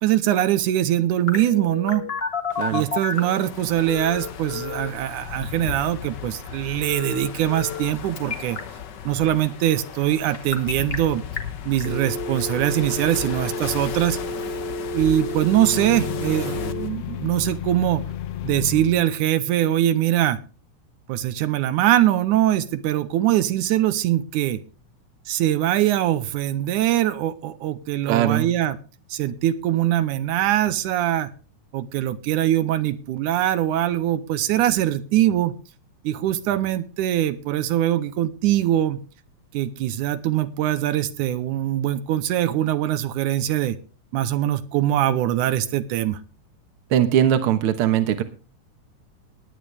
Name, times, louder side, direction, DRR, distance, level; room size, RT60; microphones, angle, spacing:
voice 1, 0.0-2.1 2.7-8.6 9.1-11.2 11.7-14.2 14.9-18.0 18.4-20.4 21.1-24.6 25.3-28.8 29.1-31.3 31.7-35.5 36.0-39.0 39.5-43.8 44.1-46.2, right 12 dB, 85° right, 12 dB, 2.2 m, -22 dB
Telephone, 1.3-3.4 3.9-4.9 6.9-7.9 8.2-8.6 10.3-10.9 11.4-11.5 11.8-16.9, left 3 dB, 30° left, 1.2 m, -30 dB
sound 1, 2.5-16.9, left 8 dB, 90° left, 0.9 m, -36 dB
sound 2, 15.4-19.0, left 10 dB, 65° left, 1.6 m, -33 dB
voice 2, 28.1-28.5 46.9-48.2, right 10 dB, 55° right, 9 dB, 1.8 m, -20 dB
19.0 x 9.6 x 3.4 m, 0.36 s
omnidirectional pair, 3.5 m